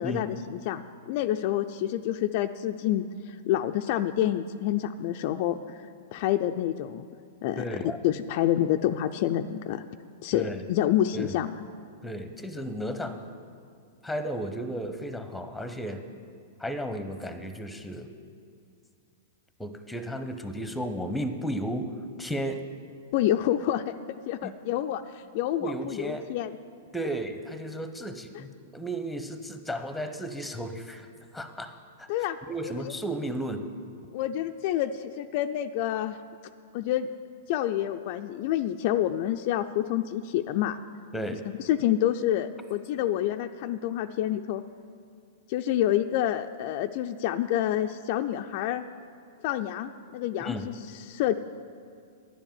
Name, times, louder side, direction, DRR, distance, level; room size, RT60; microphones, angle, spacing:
voice 1, 0.0-5.6 6.1-7.0 7.4-7.6 8.0-9.8 10.2-11.5 23.1-23.9 24.3-26.5 32.1-32.9 34.1-36.2 36.7-37.1 37.5-40.8 41.7-44.6 45.5-48.9 49.4-50.7 51.1-51.3, left 12 dB, 50° left, 7 dB, 0.3 m, -28 dB
voice 2, 7.6-8.0 10.3-10.7 11.1-11.4 12.0-13.2 14.0-16.0 16.6-18.1 19.6-21.9 22.2-22.6 24.4-24.5 25.6-26.3 26.9-31.1 31.3-32.1 32.5-33.6 41.1-41.4 50.4-50.6, right 1 dB, 5° left, 9 dB, 0.8 m, -34 dB
10.0 x 7.2 x 7.2 m, 2.3 s
hypercardioid pair, 110°, 0 cm